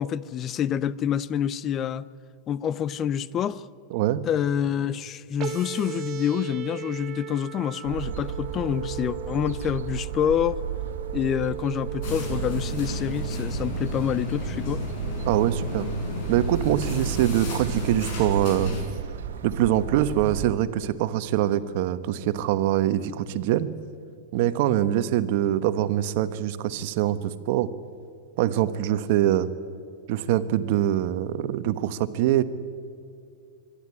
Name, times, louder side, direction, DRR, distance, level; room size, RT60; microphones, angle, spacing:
voice 1, 0.0-2.1 2.5-3.6 4.2-10.6 11.1-14.8, left 9 dB, 30° left, 0.6 m, -27 dB
voice 2, 3.9-4.2 15.3-15.9 16.3-18.7 19.4-23.7 24.3-27.7 28.4-29.5 30.1-32.4, right 12 dB, 60° right, 1.1 m, -24 dB
sound 1, 5.4-13.4, right 12 dB, 35° right, 1.3 m, -38 dB
sound 2, 7.8-20.5, right 7 dB, 90° right, 1.3 m, -34 dB
sound 3, 12.0-18.8, left 1 dB, 55° left, 6.9 m, -32 dB
25.0 x 12.0 x 9.7 m
hypercardioid pair, 130°, 0 cm